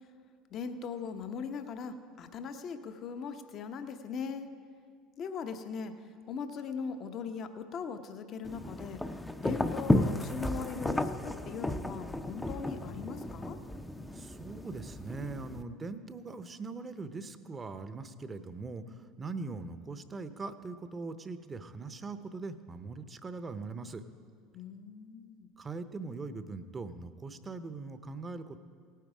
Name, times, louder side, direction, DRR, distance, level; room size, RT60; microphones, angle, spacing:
voice 1, 0.5-4.5 5.2-5.9 6.3-9.0 9.4-13.6 24.5-25.5, left 6 dB, 50° left, 8 dB, 0.9 m, -40 dB
sound 1, 8.4-15.6, left 1 dB, 10° left, 0.6 m, -33 dB
voice 2, 14.1-18.8 19.2-24.0 25.6-28.6, right 3 dB, 25° right, 11 dB, 0.8 m, -41 dB
17.5 x 9.3 x 4.9 m, 2.2 s
hypercardioid pair, 80°, 0 cm